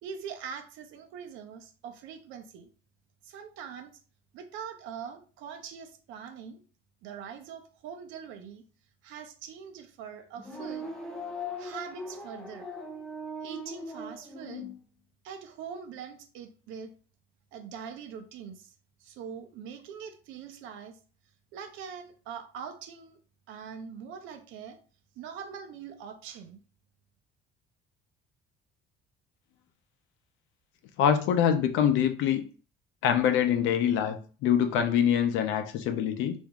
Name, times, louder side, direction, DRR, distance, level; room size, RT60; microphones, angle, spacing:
voice 1, 0.0-2.7 3.2-4.0 4.3-6.6 7.0-8.6 9.0-10.9 11.6-12.7 13.4-14.7 15.2-16.9 17.5-18.7 19.0-21.0 21.5-23.2 23.5-24.8 25.2-26.6, right 7 dB, 75° right, 6 dB, 0.6 m, -43 dB
sound 1, 10.4-14.7, left 1 dB, 5° left, 0.6 m, -39 dB
voice 2, 31.0-32.4 33.0-36.3, left 9 dB, 70° left, 7 dB, 0.6 m, -24 dB
2.9 x 2.6 x 3.5 m, 0.39 s
cardioid pair, 175°, 20 cm